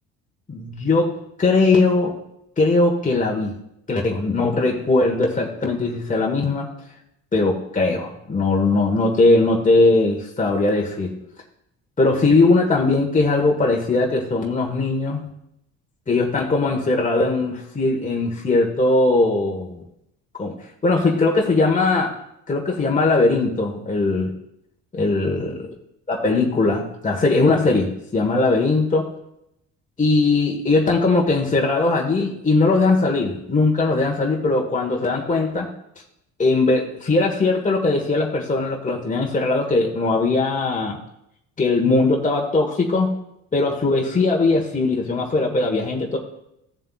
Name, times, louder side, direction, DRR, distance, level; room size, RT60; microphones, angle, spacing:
voice 1, 0.5-2.1 2.6-3.6 3.9-6.7 7.3-11.1 12.0-15.2 16.1-19.8 20.4-20.5 20.8-22.1 22.5-24.3 24.9-25.6 26.1-29.1 30.0-35.7 36.4-41.0 41.6-43.1 43.5-46.2, left 3 dB, 20° left, 0 dB, 1.6 m, -20 dB
15.5 x 7.4 x 2.5 m, 0.80 s
hypercardioid pair, 55°, 39 cm